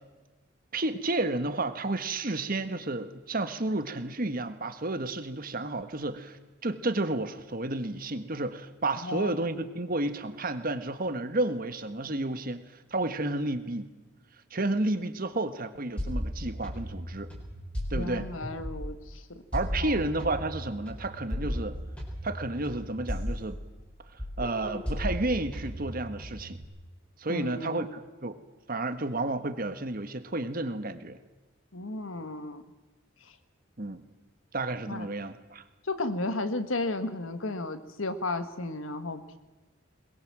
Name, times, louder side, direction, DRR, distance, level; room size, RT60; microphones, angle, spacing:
voice 1, 0.7-13.9 14.5-17.3 17.9-18.3 19.5-21.8 22.2-23.6 24.1-26.6 27.2-28.4 28.7-31.2 33.8-34.0 34.5-35.6, right 2 dB, 45° right, 10 dB, 1.5 m, -31 dB
voice 2, 9.0-9.3 17.9-19.4 19.8-20.0 27.3-27.9 31.7-32.6 34.9-35.1 35.9-39.4, left 2 dB, 80° left, 10 dB, 1.6 m, -34 dB
sound 1, 16.0-19.1 19.5-23.9 24.2-26.6, equal, 5° left, 4.8 m, -35 dB
22.0 x 21.5 x 7.5 m, 1.2 s
head